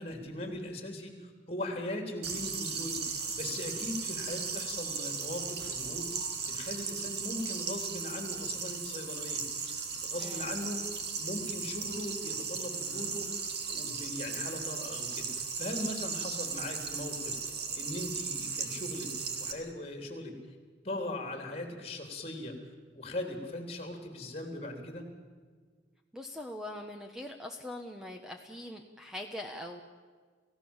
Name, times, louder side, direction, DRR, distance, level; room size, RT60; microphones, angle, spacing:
voice 1, 0.0-6.1 6.4-9.7 10.0-10.8 11.1-13.3 13.7-17.4 17.7-20.4 20.8-22.6 22.9-25.0, left 1 dB, 30° left, 4 dB, 3.5 m, -39 dB
sound 1, 2.2-19.5, right 5 dB, 60° right, 2.4 m, -36 dB
voice 2, 26.1-29.8, left 1 dB, 5° right, 3 dB, 1.2 m, -42 dB
29.5 x 16.5 x 7.3 m, 1.5 s
head